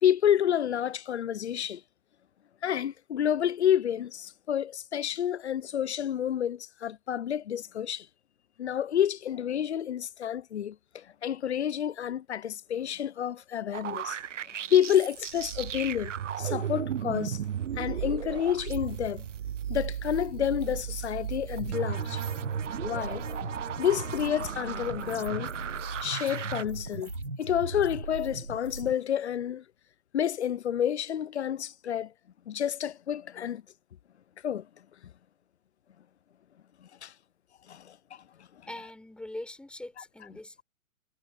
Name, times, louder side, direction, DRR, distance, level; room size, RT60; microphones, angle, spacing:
voice 1, 0.0-1.8 2.6-8.1 8.6-14.2 14.7-17.4 17.8-19.3 19.7-22.2 22.8-23.3 23.8-25.5 26.0-27.1 27.4-29.6 30.1-32.1 32.5-33.6 34.4-34.7 37.0-37.1 37.7-38.0, left 10 dB, 45° left, 0.9 m, -29 dB
sound 1, 13.7-26.6, right 9 dB, 55° right, 0.8 m, -35 dB
sound 2, 21.6-28.9, right 2 dB, 80° right, 5.2 m, -38 dB
voice 2, 38.7-40.6, left 1 dB, ahead, 4.6 m, -42 dB
figure-of-eight pair, 120°, 45 cm